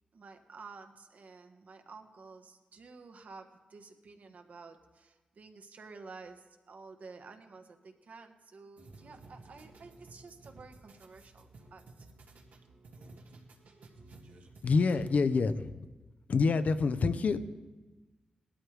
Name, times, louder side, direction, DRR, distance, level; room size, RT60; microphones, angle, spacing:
voice 1, 0.1-12.1, right 4 dB, 65° right, 6 dB, 1.4 m, -51 dB
sound 1, 8.8-15.4, right 2 dB, 80° right, 1.8 m, -54 dB
voice 2, 14.6-15.9 16.3-17.4, left 4 dB, 65° left, 11 dB, 0.8 m, -27 dB
18.5 x 12.5 x 3.4 m, 1.2 s
cardioid pair, 65°, 3 cm